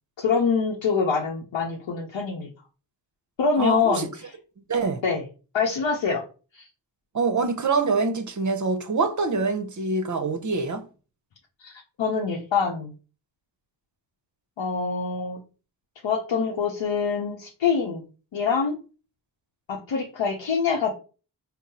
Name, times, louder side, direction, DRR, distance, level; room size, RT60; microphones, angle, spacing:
voice 1, 0.2-2.5 3.4-4.1 5.0-5.2 5.5-6.2 6.5-6.7 11.6-12.9 14.6-15.4 16.0-18.0 18.3-18.8 19.7-20.9, left 5 dB, 85° left, 0.7 m, -25 dB
voice 2, 3.6-4.1 4.7-5.0 7.1-10.9, right 4 dB, 40° right, 0.7 m, -25 dB
3.7 x 2.0 x 4.1 m
cardioid pair, 45°, 44 cm